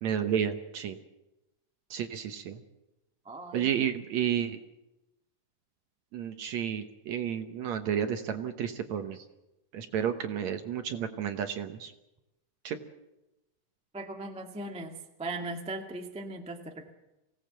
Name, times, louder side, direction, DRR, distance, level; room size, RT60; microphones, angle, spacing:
voice 1, 0.0-1.0 1.9-2.6 3.5-4.6 6.1-9.2 9.7-11.9 12.6-12.8, right 9 dB, 65° right, 7 dB, 2.0 m, -31 dB
voice 2, 3.2-3.7 13.9-17.0, right 2 dB, 5° right, 2 dB, 0.6 m, -38 dB
24.0 x 17.0 x 7.6 m, 0.96 s
omnidirectional pair, 4.0 m